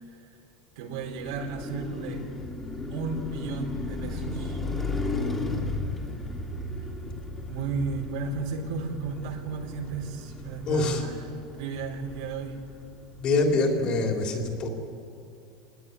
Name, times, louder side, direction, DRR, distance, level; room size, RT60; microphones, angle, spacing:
voice 1, 0.8-2.3 2.9-4.6 7.5-11.2 11.5-12.6, right 4 dB, 70° right, 2 dB, 4.1 m, -34 dB
Car passing by, 0.9-13.2, left 2 dB, 10° left, 2.9 m, -35 dB
voice 2, 10.6-11.1 13.2-14.7, left 3 dB, 30° left, 2 dB, 3.7 m, -25 dB
25.5 x 19.5 x 9.6 m, 2.5 s
supercardioid pair, 160°, 3 cm